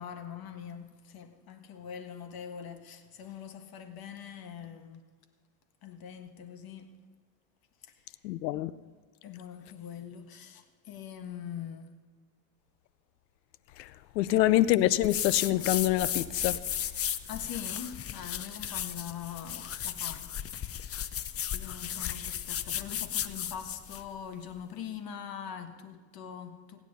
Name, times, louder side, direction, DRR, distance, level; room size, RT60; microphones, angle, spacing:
voice 1, 0.0-5.0 5.8-6.9 8.5-8.6 9.2-11.9 17.3-20.3 21.5-26.8, left 8 dB, 45° left, 1.6 m, -43 dB
voice 2, 8.2-8.7 13.8-13.9 14.1-16.6, left 15 dB, 85° left, 0.7 m, -25 dB
sound 1, 15.0-24.1, left 10 dB, 30° left, 0.6 m, -35 dB
16.0 x 9.7 x 5.5 m
hypercardioid pair, 80°, 49 cm